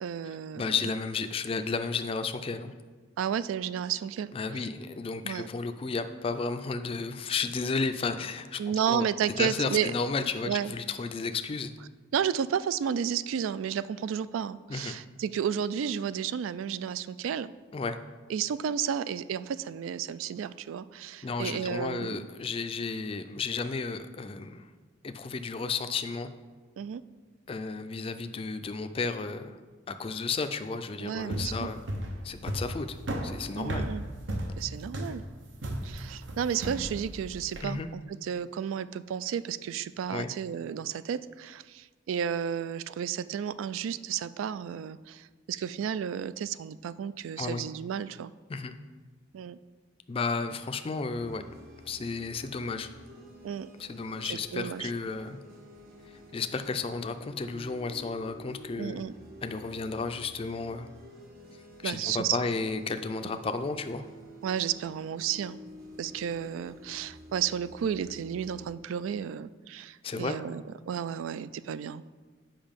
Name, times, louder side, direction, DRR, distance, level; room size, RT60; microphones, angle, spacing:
voice 1, 0.0-0.8 3.2-4.3 4.6-4.7 5.2-5.5 8.6-9.9 10.4-10.7 12.1-17.5 18.3-22.3 26.8-27.0 31.0-31.7 33.6-34.0 34.6-35.2 35.8-48.3 49.3-49.6 53.4-53.7 54.2-54.9 58.8-59.1 61.8-62.4 64.4-65.6 66.0-72.0, right 8 dB, 90° right, 17 dB, 0.3 m, -32 dB
voice 2, 0.5-2.7 4.3-9.1 9.4-11.7 14.7-14.9 17.7-18.0 21.2-24.7 25.0-26.3 27.5-29.5 29.9-31.8 32.2-33.0 33.2-33.9 37.6-37.9 40.1-40.3 47.4-47.6 48.5-48.7 50.1-51.4 51.8-52.9 53.8-55.4 56.1-59.0 59.4-60.9 61.8-64.0 70.0-70.4, left 4 dB, 30° left, 9 dB, 0.3 m, -33 dB
sound 1, 31.2-37.7, right 1 dB, 70° right, 0.8 m, -35 dB
sound 2, 51.1-68.8, left 1 dB, 50° right, 1.1 m, -50 dB
7.2 x 5.5 x 5.2 m, 1.4 s
head